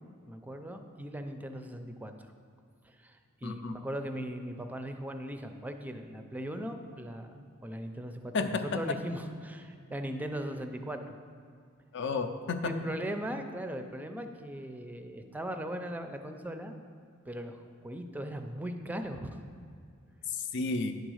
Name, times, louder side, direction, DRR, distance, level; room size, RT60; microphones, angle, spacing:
voice 1, 0.3-2.1 2.8-8.5 8.7-11.2 12.6-16.8 17.3-19.4, right 1 dB, 10° right, 6 dB, 0.4 m, -39 dB
voice 2, 3.4-3.8 8.3-8.6 11.9-12.7 20.3-20.9, left 4 dB, 60° left, 8 dB, 0.5 m, -32 dB
9.7 x 4.0 x 6.3 m, 2.3 s
head